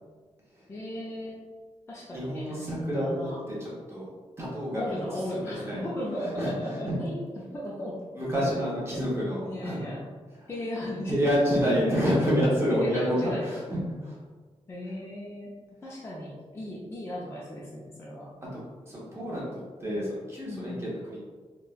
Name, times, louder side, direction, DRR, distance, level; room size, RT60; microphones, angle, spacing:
voice 1, 0.7-1.4 1.9-3.4 4.8-8.0 9.1-10.1 10.5-11.3 11.7-12.2 12.8-13.5 14.7-15.5 15.8-18.4 20.5-20.9, left 1 dB, 25° left, -5 dB, 0.3 m, -36 dB
voice 2, 2.1-4.1 4.4-5.0 5.3-5.9 6.4-6.6 6.9-7.0 8.1-9.8 11.0-14.2 18.8-21.2, equal, 20° right, -7 dB, 0.7 m, -28 dB
3.1 x 2.1 x 2.3 m, 1.4 s
wide cardioid pair, 175°, 11 cm